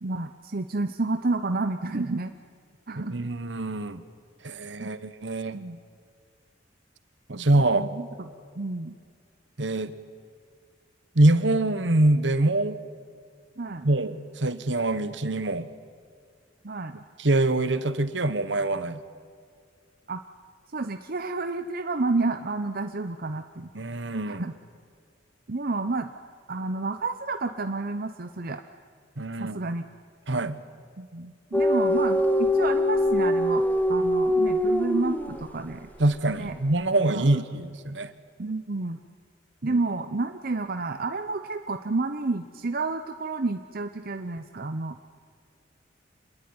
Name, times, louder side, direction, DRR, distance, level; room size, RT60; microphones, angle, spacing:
voice 1, 0.0-2.3 2.9-3.3 4.8-4.9 5.5-5.8 7.3-7.5 7.7-9.0 13.6-13.9 16.6-17.0 20.1-20.2 20.7-23.7 24.3-24.5 25.5-26.1 26.5-28.6 29.4-29.8 31.0-35.9 36.4-36.5 37.1-37.2 38.4-39.0 39.6-45.0, right 3 dB, 50° right, 8 dB, 0.9 m, -30 dB
voice 2, 3.1-4.0 4.4-5.6 7.3-7.9 9.6-9.9 11.1-12.8 13.8-15.7 17.2-19.0 23.7-24.5 29.2-29.7 30.3-30.6 36.0-38.1 39.6-39.8, right 2 dB, 70° right, 13 dB, 1.4 m, -24 dB
sound 1, 31.5-35.6, left 1 dB, 10° left, 1.2 m, -23 dB
27.0 x 20.5 x 9.7 m, 2.1 s
head